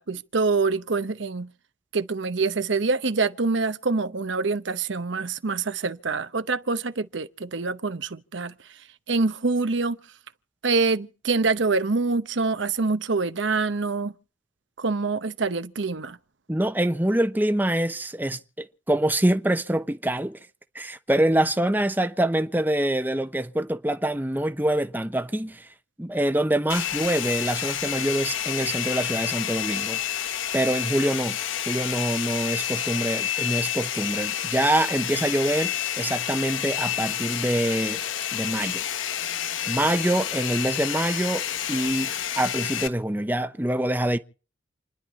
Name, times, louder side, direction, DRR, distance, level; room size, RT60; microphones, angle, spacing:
voice 1, 0.0-1.5 1.9-10.0 10.6-14.1 14.8-16.2, right 4 dB, 70° right, 0.9 m, -25 dB
voice 2, 16.5-20.4 20.7-25.7 26.0-31.4 31.7-38.0 38.3-38.8 39.7-44.2, right 1 dB, 10° right, 0.8 m, -25 dB
Domestic sounds home sounds, 26.7-42.9, left 10 dB, 85° left, 1.0 m, -29 dB
29.0 x 10.5 x 4.2 m
head